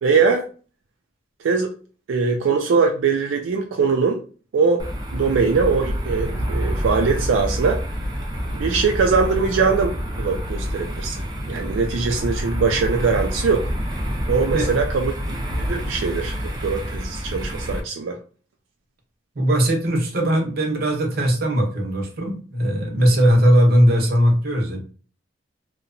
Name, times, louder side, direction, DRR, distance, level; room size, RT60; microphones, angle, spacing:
voice 1, 0.0-0.5 1.4-1.7 2.1-4.2 4.5-4.8 5.1-7.8 8.5-13.7 14.3-15.1 15.5-18.2, right 5 dB, 85° right, 0.4 m, -21 dB
sound 1, 4.8-17.8, equal, 20° right, 0.4 m, -27 dB
voice 2, 19.4-24.8, equal, 55° right, 0.7 m, -19 dB
2.8 x 2.1 x 2.5 m
head